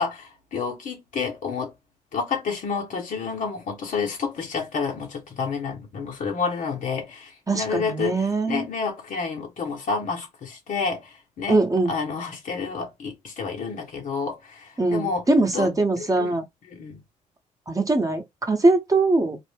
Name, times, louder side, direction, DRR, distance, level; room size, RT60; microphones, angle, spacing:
voice 1, 0.0-1.7 2.1-11.6 11.9-15.2 15.5-15.7 16.0-16.4 16.7-17.0, left 5 dB, 65° left, 1.2 m, -29 dB
voice 2, 7.5-8.7 11.5-11.9 14.8-16.4 17.7-19.4, right 2 dB, 25° right, 0.9 m, -22 dB
2.6 x 2.1 x 3.4 m
supercardioid pair, 60°, 14 cm